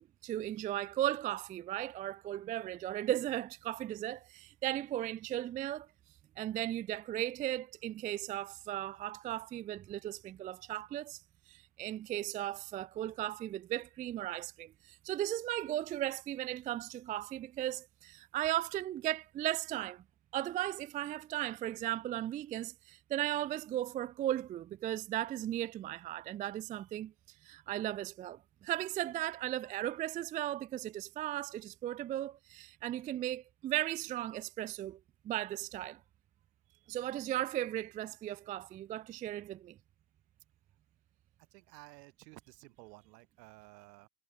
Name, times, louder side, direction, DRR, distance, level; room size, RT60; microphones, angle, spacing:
voice 1, 0.2-5.9 6.4-11.2 11.5-20.0 20.3-27.1 27.4-35.0 35.2-36.0 36.9-39.8, right 13 dB, 20° right, 0.4 m, -36 dB
voice 2, 41.5-44.1, right 24 dB, 70° right, 7.1 m, -55 dB
supercardioid pair, 140°, 50 cm